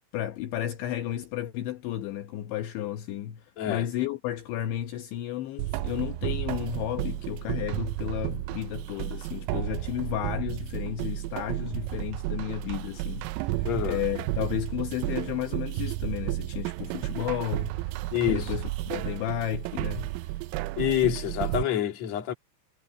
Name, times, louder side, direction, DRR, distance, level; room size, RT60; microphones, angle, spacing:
voice 1, 0.1-18.0 18.3-20.1, left 12 dB, 75° left, 3.1 m, -33 dB
sound 1, 5.6-21.6, right 18 dB, 85° right, 3.3 m, -32 dB
voice 2, 13.6-14.0 18.1-18.5 20.8-22.3, left 11 dB, 45° left, 2.8 m, -27 dB
omnidirectional pair, 5.9 m